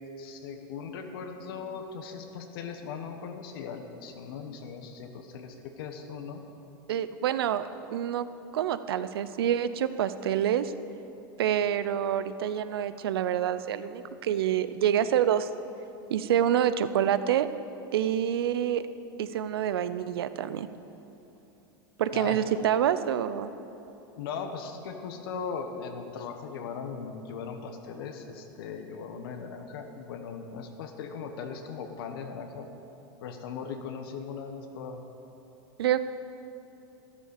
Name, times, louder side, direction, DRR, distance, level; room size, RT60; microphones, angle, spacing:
voice 1, 0.2-6.4 22.1-22.5 24.2-32.7 33.2-35.0, left 6 dB, 70° left, 5 dB, 1.2 m, -39 dB
voice 2, 6.9-8.3 8.5-10.7 11.4-15.5 16.1-17.5 17.9-18.8 19.2-20.7 22.0-23.5 35.8-36.0, right 10 dB, 80° right, 13 dB, 0.6 m, -27 dB
13.0 x 10.5 x 6.6 m, 3.0 s
hypercardioid pair, 105°, 12 cm